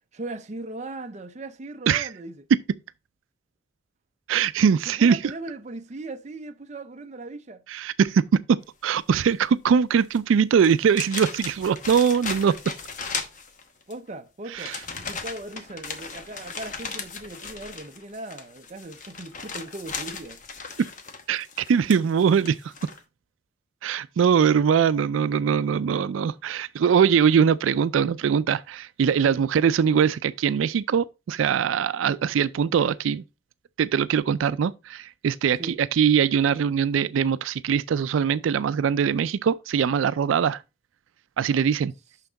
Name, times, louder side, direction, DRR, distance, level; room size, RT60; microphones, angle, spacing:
voice 1, 0.1-2.5 4.7-7.6 13.9-20.4 29.3-29.4 35.6-35.8, right 2 dB, 35° right, 0.6 m, -38 dB
voice 2, 4.3-5.2 7.7-12.5 14.5-14.8 21.3-22.6 23.8-33.2 33.8-40.6 41.4-41.9, right 7 dB, 90° right, 0.3 m, -22 dB
sound 1, 10.0-10.2 10.6-13.9 14.5-23.0, left 5 dB, 40° left, 1.0 m, -36 dB
6.1 x 5.7 x 3.8 m
head